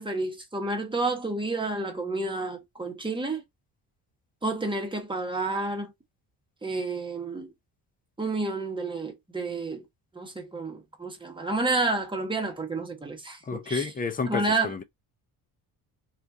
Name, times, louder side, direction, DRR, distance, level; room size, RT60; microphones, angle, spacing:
voice 1, 0.0-3.4 4.4-5.9 6.6-7.5 8.2-9.8 10.1-13.9 14.3-14.7, right 3 dB, 10° right, 1.1 m, -30 dB
voice 2, 13.5-14.8, left 4 dB, 20° left, 0.6 m, -30 dB
2.8 x 2.5 x 3.5 m
cardioid pair, 105°, 41 cm